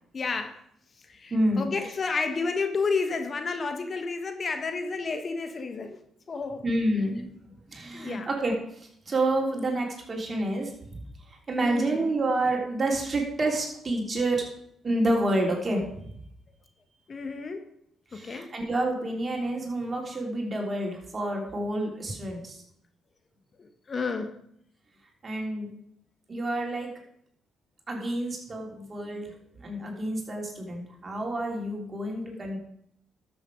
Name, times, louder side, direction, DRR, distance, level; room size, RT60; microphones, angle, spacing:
voice 1, 0.1-0.6 1.0-6.0 6.3-6.6 7.9-8.3 11.6-12.1 17.1-17.7 18.1-18.5 23.6-24.4, left 4 dB, 45° left, 8 dB, 1.2 m, -31 dB
voice 2, 1.3-1.7 6.6-11.0 11.5-14.4 14.8-16.2 18.1-22.6 25.2-25.7 26.3-26.9 27.9-29.3 29.6-32.6, right 1 dB, 40° right, 0 dB, 3.5 m, -29 dB
12.5 x 7.1 x 5.0 m, 0.71 s
hypercardioid pair, 45°, 0 cm